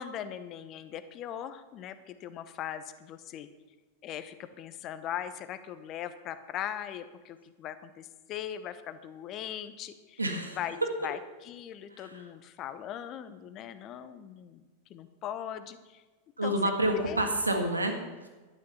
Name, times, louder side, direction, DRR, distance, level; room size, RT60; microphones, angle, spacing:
voice 1, 0.0-3.5 4.0-10.2 10.5-14.6 14.9-16.0 16.4-16.6 17.0-17.3, left 10 dB, 35° left, 11 dB, 0.8 m, -40 dB
voice 2, 10.2-10.6 12.0-12.2 16.4-18.3, right 1 dB, 80° right, 5 dB, 1.7 m, -29 dB
11.5 x 10.5 x 5.6 m, 1.3 s
figure-of-eight pair, 90°, 0 cm